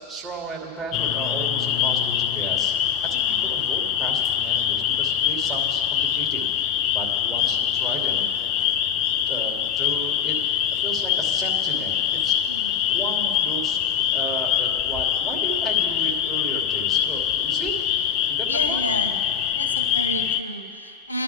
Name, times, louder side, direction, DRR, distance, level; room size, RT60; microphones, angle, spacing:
voice 1, 0.1-2.7 3.0-6.4 6.9-8.3 9.3-12.4 12.9-17.8 18.3-18.8, right 5 dB, 15° right, -3 dB, 2.7 m, -35 dB
sound 1, 0.9-20.4, left 10 dB, 40° left, 0.4 m, -24 dB
voice 2, 18.5-19.2 19.5-21.2, equal, 85° left, 4 dB, 1.0 m, -31 dB
26.0 x 11.0 x 3.5 m, 2.6 s
figure-of-eight pair, 90°, 0 cm